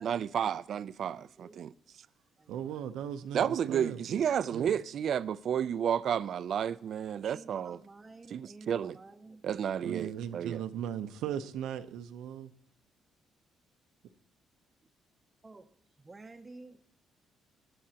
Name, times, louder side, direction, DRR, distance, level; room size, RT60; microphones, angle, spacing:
voice 1, 0.0-1.7 3.3-7.8 8.3-9.0 9.4-10.6, right 8 dB, 55° right, 0.3 m, -31 dB
voice 2, 1.0-1.6 2.4-2.9 7.3-9.5 15.4-16.8, right 3 dB, 20° right, 0.6 m, -52 dB
voice 3, 2.5-4.3 4.5-4.7 9.8-12.5, right 9 dB, 85° right, 0.7 m, -38 dB
18.0 x 11.0 x 2.9 m
cardioid pair, 105°, 0 cm